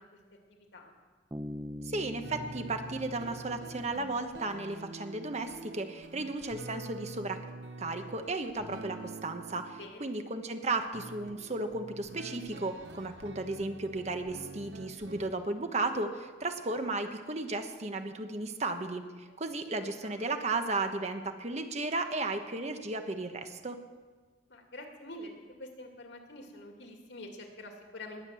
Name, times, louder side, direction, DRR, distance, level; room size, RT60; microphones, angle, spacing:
voice 1, 0.5-0.9 9.8-10.1 19.3-19.4 19.8-20.1 24.5-25.3 25.6-28.2, left 1 dB, 85° left, 2 dB, 2.6 m, -46 dB
Bass guitar, 1.3-4.8, equal, 15° right, 0.6 m, -44 dB
voice 2, 1.8-7.4 7.8-23.8, right 2 dB, 40° right, 7 dB, 1.2 m, -34 dB
sound 1, 2.2-10.0 10.9-15.3, right 2 dB, 85° right, 0.8 m, -46 dB
20.5 x 7.6 x 7.7 m, 1.4 s
head